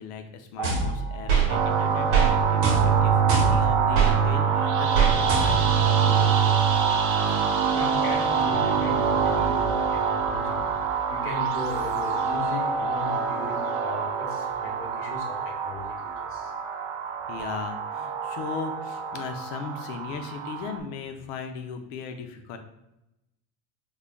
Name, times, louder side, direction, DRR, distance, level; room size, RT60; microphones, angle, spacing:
voice 1, 0.0-6.5 17.3-22.6, left 5 dB, 75° left, 6 dB, 0.7 m, -38 dB
sound 1, 0.5-8.9 9.9-10.0, right 2 dB, 5° right, 0.8 m, -45 dB
sound 2, 0.6-1.5 2.1-2.3 2.6-4.1 4.9-5.8, right 6 dB, 90° right, 1.2 m, -23 dB
sound 3, 1.5-20.8, right 6 dB, 55° right, 0.6 m, -25 dB
voice 2, 7.7-10.6 11.1-16.5, left 3 dB, 35° left, 0 dB, 1.0 m, -37 dB
3.8 x 3.1 x 2.2 m, 0.90 s
supercardioid pair, 105°, 37 cm